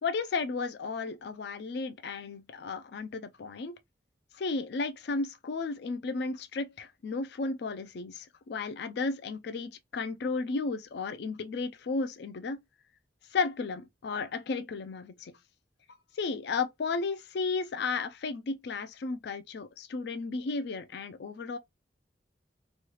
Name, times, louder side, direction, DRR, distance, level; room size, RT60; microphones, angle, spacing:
voice 1, 0.0-3.8 4.3-12.6 13.3-15.3 16.2-21.6, left 4 dB, 65° left, 0.4 m, -34 dB
3.1 x 2.3 x 3.0 m
head